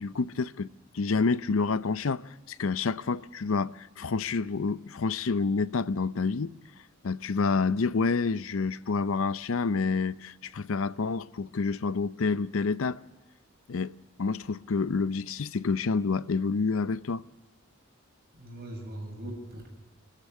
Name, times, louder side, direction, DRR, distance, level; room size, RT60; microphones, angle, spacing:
voice 1, 0.0-6.5 7.0-13.0 13.7-17.2, left 4 dB, 70° left, 0.6 m, -28 dB
voice 2, 18.3-19.7, right 1 dB, 50° right, 7.5 m, -40 dB
24.5 x 13.5 x 9.5 m
head